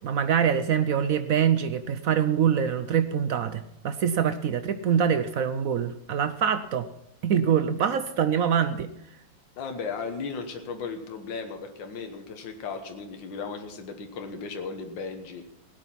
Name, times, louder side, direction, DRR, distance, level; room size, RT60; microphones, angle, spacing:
voice 1, 0.0-6.9 7.2-8.9, right 8 dB, 70° right, 11 dB, 0.8 m, -24 dB
voice 2, 9.6-15.4, left 5 dB, 75° left, 5 dB, 2.0 m, -36 dB
17.0 x 9.0 x 5.7 m, 0.79 s
omnidirectional pair, 2.1 m